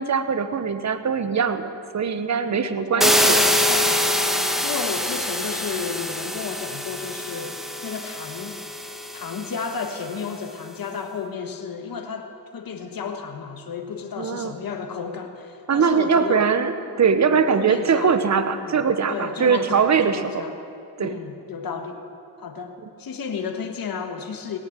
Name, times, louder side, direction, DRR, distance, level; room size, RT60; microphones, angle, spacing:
voice 1, 0.0-3.4 14.2-14.5 15.7-20.4 21.0-21.1, right 6 dB, 40° right, 11 dB, 1.1 m, -21 dB
voice 2, 2.4-8.7 9.1-16.5 17.2-18.2 18.5-18.8 19.1-20.6 21.0-22.0 22.4-24.6, left 6 dB, 50° left, 5 dB, 1.6 m, -32 dB
sound 1, 3.0-9.8, equal, ahead, 1.2 m, -24 dB
18.0 x 9.3 x 7.4 m, 2.5 s
cardioid pair, 70°, 44 cm